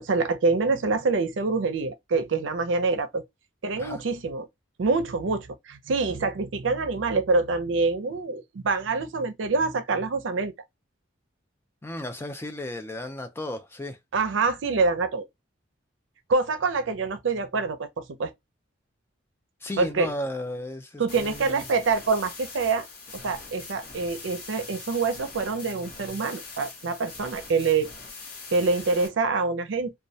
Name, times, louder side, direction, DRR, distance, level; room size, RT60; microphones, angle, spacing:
voice 1, 0.0-3.2 3.6-4.5 4.8-10.5 14.1-15.3 16.3-18.3 19.8-20.1 21.0-22.9 23.1-27.9 28.5-29.9, right 4 dB, 75° right, 0.5 m, -26 dB
voice 2, 11.8-14.0 19.6-21.6, left 1 dB, 10° left, 0.3 m, -34 dB
sound 1, 21.1-29.1, left 4 dB, 50° left, 0.8 m, -42 dB
2.2 x 2.1 x 2.6 m
head